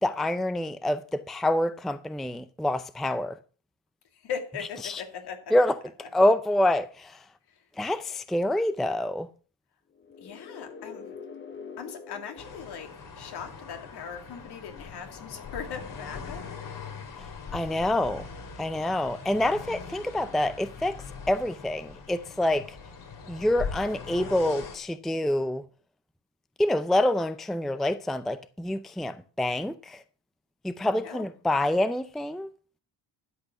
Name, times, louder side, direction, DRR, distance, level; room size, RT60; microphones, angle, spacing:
voice 1, 0.0-3.4 4.8-5.0 5.5-5.8 6.1-7.3 7.8-9.3 17.2-18.3 18.6-21.0 21.3-22.8 23.3-25.6 26.6-30.0 30.6-32.5, left 1 dB, ahead, 0.5 m, -27 dB
voice 2, 4.1-5.5 7.5-7.7 10.2-11.2 11.8-16.5 30.9-31.3, left 7 dB, 60° left, 2.6 m, -39 dB
sound 1, 9.9-13.7, left 5 dB, 25° left, 1.2 m, -45 dB
sound 2, 12.4-24.8, left 5 dB, 45° left, 2.9 m, -41 dB
12.5 x 8.4 x 5.8 m
cardioid pair, 135°, 43 cm